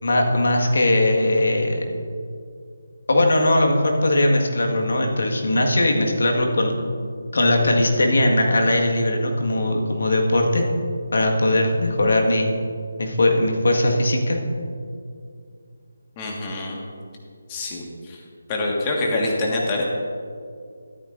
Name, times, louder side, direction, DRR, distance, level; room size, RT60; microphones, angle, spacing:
voice 1, 0.0-1.8 3.1-6.7 7.3-10.6 11.1-12.5 13.0-14.4, left 1 dB, 65° left, 1 dB, 1.7 m, -19 dB
voice 2, 16.2-16.8 17.5-18.2 18.5-19.8, left 2 dB, 25° left, -1 dB, 1.6 m, -25 dB
13.5 x 11.5 x 2.6 m, 2.3 s
figure-of-eight pair, 160°, 0 cm